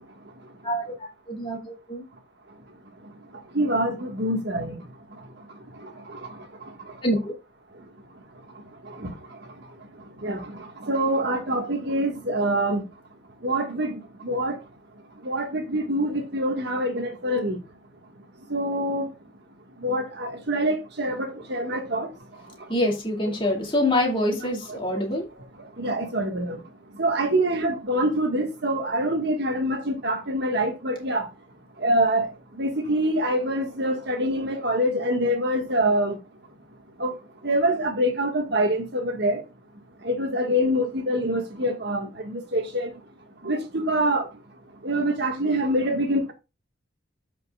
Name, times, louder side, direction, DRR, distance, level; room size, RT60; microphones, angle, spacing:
voice 1, 1.3-2.0 7.0-7.3 22.7-25.2, left 1 dB, 25° left, 2.3 m, -25 dB
voice 2, 3.5-4.8 10.2-10.4 10.9-12.8 13.4-14.0 14.2-14.5 15.2-17.6 18.5-19.1 19.8-22.1 25.8-26.6 27.0-31.2 31.8-32.3 32.6-36.2 37.0-37.1 37.4-39.4 40.0-42.1 42.5-42.9 43.4-44.2 44.8-46.3, right 1 dB, 55° right, 1.6 m, -25 dB
13.5 x 5.4 x 2.3 m
head